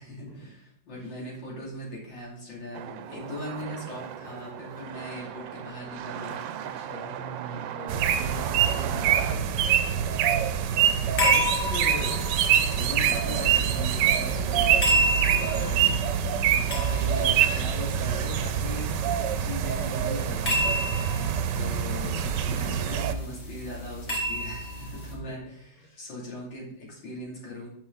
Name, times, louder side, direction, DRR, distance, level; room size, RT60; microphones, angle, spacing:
voice 1, 0.0-6.4 11.3-12.3 12.7-16.0 16.5-18.9 19.4-20.8 21.5-27.7, left 1 dB, 90° left, -4 dB, 3.4 m, -39 dB
sound 1, 2.7-9.3, right 9 dB, 90° right, 1.4 m, -37 dB
voice 2, 6.6-7.2 7.7-9.6 22.0-22.2 25.3-25.5 25.8-26.1, left 1 dB, 65° left, -4 dB, 3.3 m, -43 dB
sound 2, 7.9-23.1, right 9 dB, 75° right, 1.2 m, -25 dB
sound 3, 11.1-25.1, equal, 35° left, 2.0 m, -32 dB
9.0 x 6.4 x 3.8 m, 0.74 s
omnidirectional pair, 2.0 m